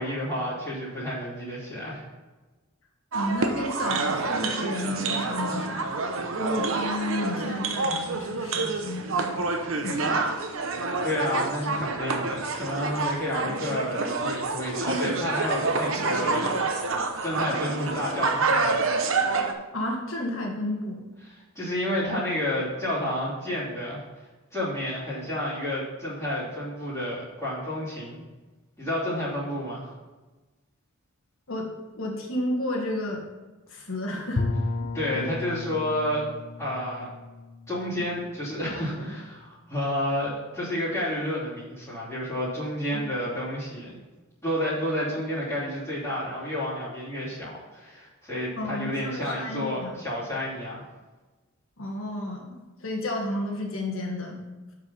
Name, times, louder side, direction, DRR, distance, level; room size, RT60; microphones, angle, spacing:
voice 1, 0.0-2.0 11.0-16.7 17.2-18.9 21.2-24.0 24.5-28.2 28.8-29.9 34.9-36.3 36.6-37.1 37.7-44.0 44.4-50.8, left 1 dB, 15° left, -12 dB, 3.0 m, -30 dB
voice 2, 3.1-5.9 6.4-9.5 9.8-10.3 19.7-21.0 31.5-31.7 31.9-33.2 33.7-34.4 35.4-35.5 42.9-43.0 48.6-50.0 51.8-52.5 52.8-54.4, left 1 dB, 60° left, 0 dB, 1.7 m, -32 dB
sound 1, 3.1-19.5, right 3 dB, 60° right, 0.8 m, -28 dB
Bowed string instrument, 34.4-39.2, left 3 dB, 40° left, 0.5 m, -34 dB
8.4 x 4.8 x 5.6 m, 1.2 s
head